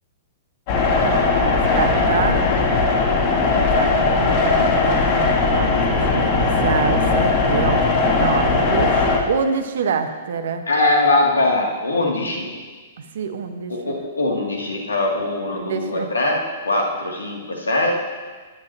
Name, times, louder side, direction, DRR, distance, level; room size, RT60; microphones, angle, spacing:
sound 1, 0.7-9.2, left 3 dB, 45° left, 2.8 m, -18 dB
voice 1, 1.0-2.5 3.7-10.6 13.0-13.9 15.5-16.1, right 6 dB, 65° right, 7 dB, 1.3 m, -26 dB
voice 2, 10.7-12.5 13.7-17.9, left 2 dB, 75° left, -1 dB, 2.7 m, -21 dB
22.5 x 10.5 x 3.0 m, 1.4 s
figure-of-eight pair, 110°, 0 cm